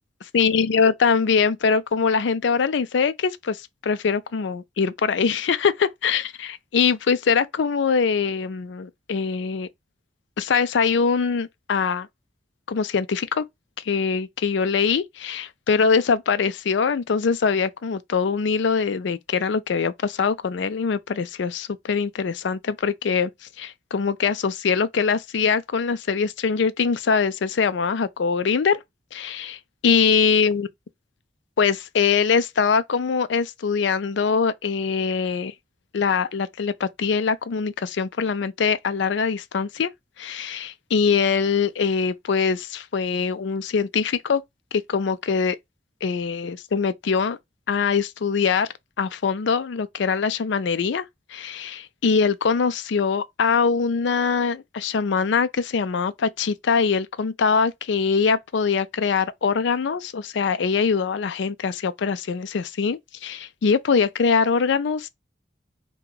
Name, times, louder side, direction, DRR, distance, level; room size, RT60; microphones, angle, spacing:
voice 1, 0.3-9.7 10.4-12.1 12.7-13.4 13.8-23.3 23.6-28.8 29.1-30.7 31.6-35.5 35.9-39.9 40.2-44.4 44.7-45.6 46.0-47.4 47.7-48.7 49.0-51.0 51.3-65.1, left 5 dB, 80° left, 0.4 m, -23 dB
2.8 x 2.3 x 3.7 m
head